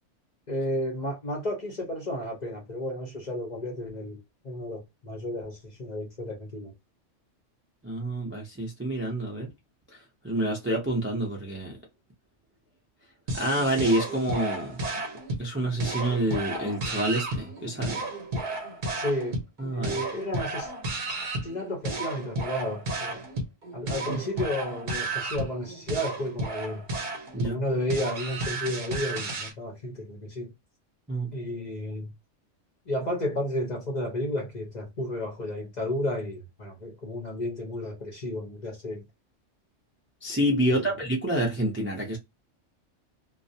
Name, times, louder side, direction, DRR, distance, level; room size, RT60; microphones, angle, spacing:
voice 1, 0.5-4.2 4.4-6.7 18.9-19.4 19.7-20.7 21.4-23.2 23.7-26.8 27.4-30.5 31.3-32.1 32.9-39.0 40.6-40.9, left 1 dB, 45° left, 0.6 m, -32 dB
voice 2, 7.8-9.5 10.2-11.8 13.3-14.8 15.4-18.0 19.6-19.9 24.1-24.2 27.3-27.6 31.1-31.3 40.2-42.2, right 1 dB, 15° right, 0.4 m, -28 dB
sound 1, 13.3-29.5, right 2 dB, 50° right, 0.7 m, -33 dB
2.4 x 2.0 x 2.6 m
omnidirectional pair, 1.3 m